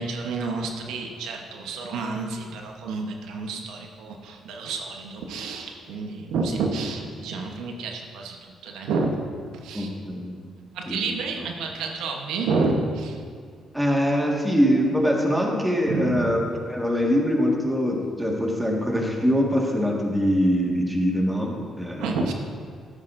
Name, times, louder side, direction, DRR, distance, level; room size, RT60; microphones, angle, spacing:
voice 1, 0.0-9.1 9.6-9.9 10.7-13.2 15.9-16.4 22.0-22.3, right 4 dB, 90° right, 2 dB, 1.0 m, -29 dB
voice 2, 9.7-10.3 10.9-11.0 11.4-11.5 13.7-22.1, equal, 10° right, -1 dB, 1.7 m, -23 dB
13.0 x 9.7 x 2.6 m, 2.1 s
cardioid pair, 90°, 0 cm